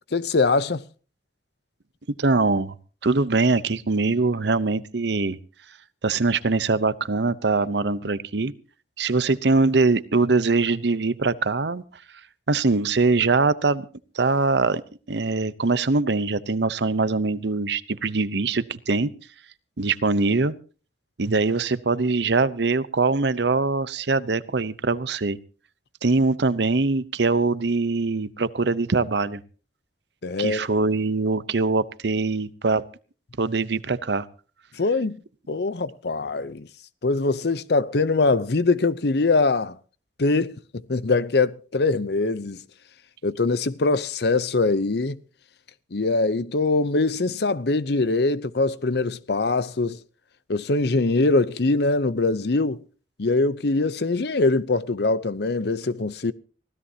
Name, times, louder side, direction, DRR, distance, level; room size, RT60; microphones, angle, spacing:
voice 1, 0.1-0.8 30.2-30.7 34.8-35.2 35.5-36.7 37.0-39.8 40.2-42.6 43.2-45.2 45.9-50.0 50.5-52.8 53.2-56.3, left 3 dB, 60° left, 0.7 m, -23 dB
voice 2, 2.2-2.7 3.0-5.4 6.0-8.5 9.0-11.8 12.5-13.9 14.1-14.8 15.1-19.1 19.8-20.5 21.2-25.4 26.0-29.4 30.4-32.9 33.4-34.3, right 3 dB, 70° right, 0.8 m, -22 dB
24.5 x 16.0 x 2.8 m
head